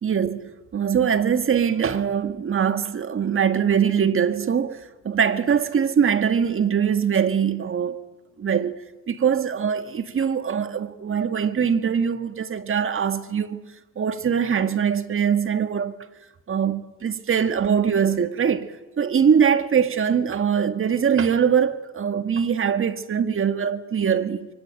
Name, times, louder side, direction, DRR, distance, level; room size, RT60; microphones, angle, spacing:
voice 1, 0.0-8.0 8.4-8.8 9.1-13.6 14.0-16.0 16.5-24.5, right 7 dB, 45° right, 1.8 m, -22 dB
26.0 x 23.5 x 8.9 m
cardioid pair, 90°, 30 cm